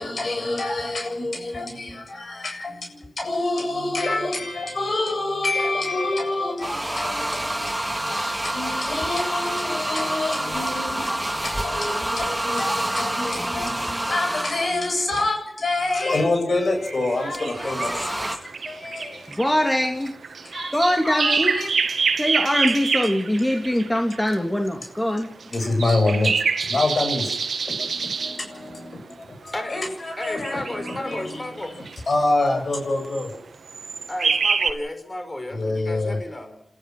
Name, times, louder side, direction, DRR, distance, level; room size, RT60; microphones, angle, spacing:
voice 1, 0.0-19.3 20.5-20.8 21.0-21.7 25.5-27.3 27.8-27.9 28.2-31.5 31.7-33.4 35.5-36.2, left 2 dB, 60° left, 7.7 m, -27 dB
sound 1, 6.6-14.9 17.3-18.4, right 1 dB, 15° right, 3.2 m, -27 dB
sound 2, 16.5-24.4 25.2-28.4 29.9-31.1 31.6-32.0 33.0-33.4 33.7-34.7, right 5 dB, 80° right, 1.9 m, -26 dB
voice 2, 19.3-20.1 20.7-21.6 22.2-25.3, left 1 dB, 15° left, 3.0 m, -22 dB
voice 3, 30.2-32.1 34.1-36.6, left 1 dB, 30° left, 5.3 m, -33 dB
28.5 x 14.5 x 6.2 m
cardioid pair, 45°, 0 cm